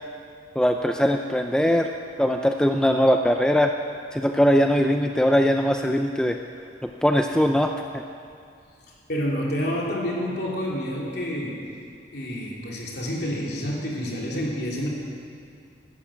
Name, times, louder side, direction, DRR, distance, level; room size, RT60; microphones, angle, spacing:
voice 1, 0.6-1.9 2.2-3.7 4.1-6.4 6.8-8.0, equal, 5° left, 4 dB, 0.5 m, -21 dB
voice 2, 9.1-11.6 12.1-14.9, equal, 60° left, -3 dB, 3.5 m, -28 dB
15.5 x 12.0 x 7.4 m, 2.4 s
head